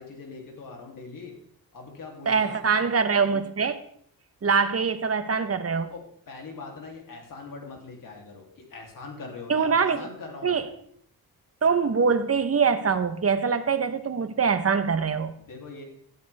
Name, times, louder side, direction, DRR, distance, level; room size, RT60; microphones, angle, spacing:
voice 1, 0.0-1.3 1.7-2.6 5.9-10.6 15.5-15.8, left 3 dB, 60° left, 3.3 m, -42 dB
voice 2, 2.3-3.8 4.4-5.9 9.5-10.1 10.4-10.7 11.6-15.4, right 5 dB, 40° right, 1.2 m, -23 dB
16.5 x 12.5 x 3.6 m
wide cardioid pair, 120°, 37 cm